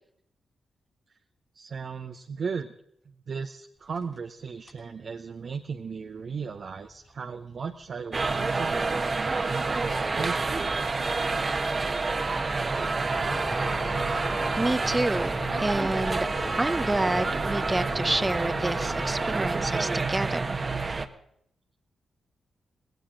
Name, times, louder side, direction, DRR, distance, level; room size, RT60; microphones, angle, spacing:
voice 1, 1.5-2.7 3.3-10.9, right 5 dB, 60° right, 5 dB, 0.9 m, -36 dB
sound 1, 3.8-4.3 4.6-4.9 5.4-19.7, left 3 dB, 50° left, 6.3 m, -47 dB
sound 2, 8.1-21.1, right 3 dB, 45° right, 1.2 m, -28 dB
sound 3, 13.1-19.4, left 4 dB, 80° left, 3.3 m, -40 dB
voice 2, 14.6-15.3 15.6-16.3 16.6-20.6, right 2 dB, 25° right, 15 dB, 0.8 m, -28 dB
19.5 x 18.5 x 3.8 m, 0.73 s
supercardioid pair, 40°, 0 cm